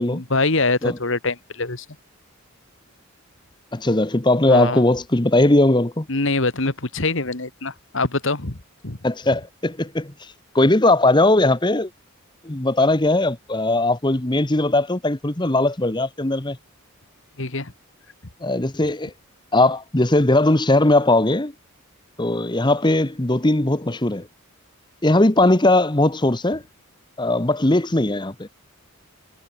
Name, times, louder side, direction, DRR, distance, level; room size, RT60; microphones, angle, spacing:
voice 1, 0.0-1.9 4.5-4.8 6.1-8.6 8.8-9.0 17.4-17.7, left 3 dB, 60° left, 2.0 m, -24 dB
voice 2, 3.7-6.1 9.0-10.1 10.5-11.9 12.4-16.6 18.4-19.1 19.5-21.5 22.2-24.3 25.0-26.6 27.2-28.5, left 2 dB, 20° left, 1.1 m, -19 dB
head